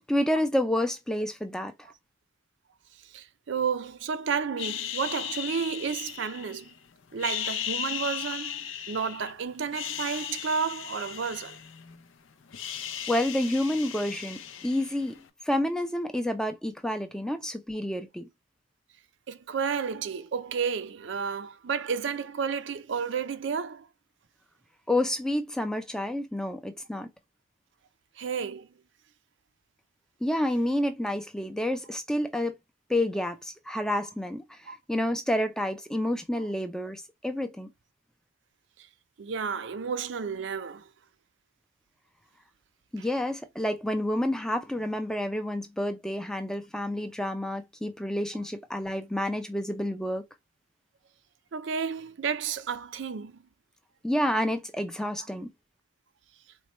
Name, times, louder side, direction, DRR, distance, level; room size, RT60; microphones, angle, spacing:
voice 1, 0.1-1.7 13.1-18.3 24.9-27.1 30.2-32.6 32.9-37.7 42.9-50.2 54.0-55.5, left 1 dB, 5° left, 0.4 m, -29 dB
voice 2, 3.0-6.7 7.1-11.6 19.3-23.9 28.2-28.7 34.7-34.8 39.2-40.9 43.0-43.1 51.5-53.4, right 6 dB, 60° right, 0.4 m, -31 dB
sound 1, 4.6-6.7 7.1-9.3 9.7-12.1 12.3-15.2, left 10 dB, 70° left, 0.5 m, -36 dB
4.2 x 2.2 x 3.0 m
head